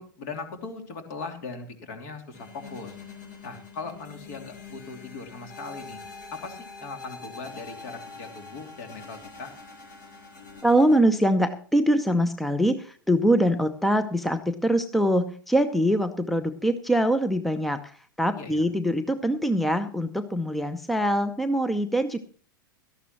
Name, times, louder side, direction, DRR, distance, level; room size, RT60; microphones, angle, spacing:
voice 1, 0.0-3.0 3.4-6.0 6.3-9.5 18.3-18.6, left 4 dB, 50° left, 5 dB, 3.0 m, -39 dB
sound 1, 2.3-11.0, left 4 dB, 65° left, 6.3 m, -44 dB
voice 2, 10.6-22.2, equal, ahead, 11 dB, 0.7 m, -23 dB
18.0 x 13.0 x 3.0 m, 0.42 s
figure-of-eight pair, 95°, 11 cm